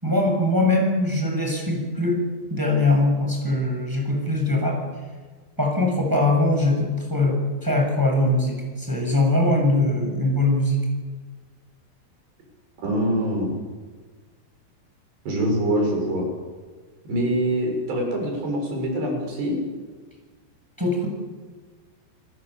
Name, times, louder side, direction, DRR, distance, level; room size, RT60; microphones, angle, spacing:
voice 1, 0.0-2.2 2.5-4.8 5.6-10.8 20.8-21.1, left 2 dB, 5° right, 1 dB, 7.6 m, -22 dB
voice 2, 12.8-13.5 15.3-16.3 17.1-19.6, right 1 dB, 75° right, 1 dB, 9.0 m, -24 dB
30.0 x 19.0 x 8.5 m, 1.5 s
omnidirectional pair, 4.9 m